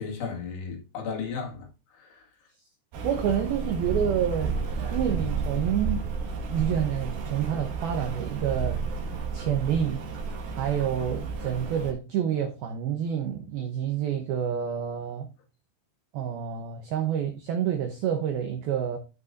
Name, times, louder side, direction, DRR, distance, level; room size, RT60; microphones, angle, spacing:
voice 1, 0.0-2.2, left 5 dB, 75° left, 4.3 m, -35 dB
Rain, 2.9-11.9, right 5 dB, 60° right, 3.0 m, -32 dB
voice 2, 3.0-4.5 4.9-6.0 6.5-8.8 9.3-10.0 10.6-15.3 16.1-19.0, right 9 dB, 80° right, 2.1 m, -28 dB
14.0 x 5.9 x 2.6 m
omnidirectional pair, 5.6 m